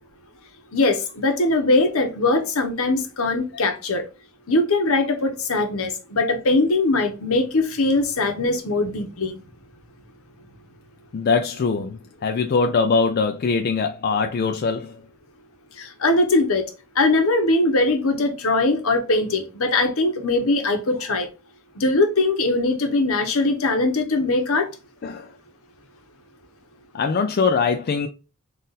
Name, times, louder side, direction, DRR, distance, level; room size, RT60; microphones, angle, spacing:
voice 1, 0.7-4.1 4.5-9.4 15.8-16.7 17.0-21.3 21.8-24.7, left 2 dB, 70° left, 0.9 m, -21 dB
voice 2, 11.1-15.0 25.0-25.3 26.9-28.1, left 4 dB, 45° left, 0.3 m, -22 dB
3.9 x 2.5 x 3.9 m
head